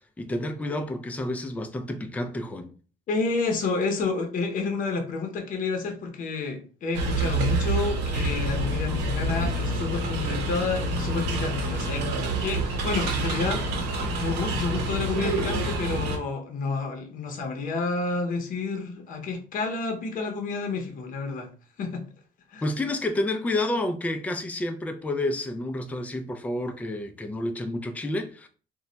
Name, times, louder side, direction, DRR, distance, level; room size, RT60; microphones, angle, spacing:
voice 1, 0.2-2.7 14.0-14.1 22.6-28.5, left 1 dB, 10° left, 0.4 m, -30 dB
voice 2, 3.1-12.1 12.4-13.7 14.1-21.5 21.8-22.0 22.5-22.6, left 4 dB, 50° left, 0.8 m, -30 dB
sound 1, 6.9-16.2, right 2 dB, 85° right, 0.8 m, -27 dB
2.3 x 2.1 x 3.8 m
cardioid pair, 110°, 17 cm